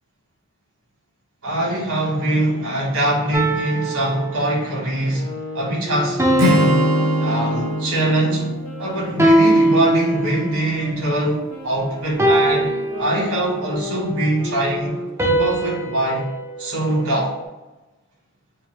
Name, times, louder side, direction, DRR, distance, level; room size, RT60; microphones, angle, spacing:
voice 1, 1.4-6.8 7.2-8.5 8.8-12.7 13.0-14.9 15.2-16.2 16.6-17.3, right 1 dB, 75° right, -3 dB, 1.3 m, -23 dB
sound 1, 3.3-4.8 6.2-8.0 9.2-10.6 12.2-13.7 15.2-17.4, right 1 dB, 10° right, 0.4 m, -21 dB
sound 2, 5.1-10.3 10.8-16.4, left 2 dB, 75° left, 0.9 m, -33 dB
Acoustic guitar / Strum, 6.4-9.9, right 1 dB, 60° right, 0.8 m, -23 dB
2.8 x 2.8 x 4.2 m, 1.1 s
head